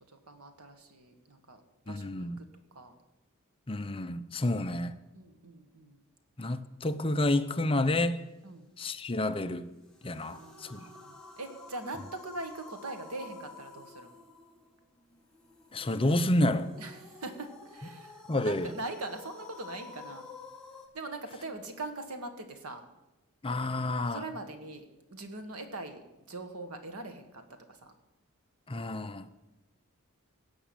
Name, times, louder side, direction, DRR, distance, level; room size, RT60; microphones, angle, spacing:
voice 1, 0.3-2.4 2.8-2.9 5.1-6.0 8.4-8.7 10.2-14.1 16.8-20.3 20.9-22.8 24.1-24.9 25.1-27.4 27.7-27.9, right 2 dB, 90° right, 1.7 m, -42 dB
voice 2, 1.9-2.4 3.7-4.9 6.4-8.2 8.8-9.7 10.0-10.8 15.7-16.7 18.3-18.7 23.4-24.2 28.7-29.3, left 1 dB, 25° left, 0.6 m, -29 dB
sound 1, 9.8-20.9, left 3 dB, 5° left, 1.7 m, -51 dB
17.0 x 6.1 x 8.8 m
head